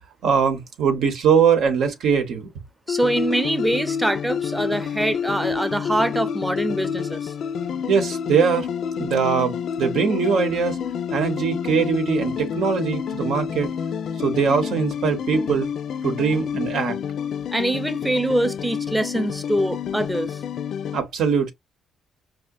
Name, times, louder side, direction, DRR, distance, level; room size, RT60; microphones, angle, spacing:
voice 1, 0.2-2.5 7.9-8.7 9.0-10.8 11.1-13.7 14.2-15.7 16.0-17.0 20.9-21.5, right 6 dB, 75° right, 0.8 m, -21 dB
sound 1, 2.9-21.0, left 7 dB, 65° left, 0.3 m, -29 dB
voice 2, 2.9-7.3 17.5-20.4, right 1 dB, 10° right, 0.6 m, -24 dB
4.8 x 2.1 x 2.5 m
cardioid pair, 90°, 0 cm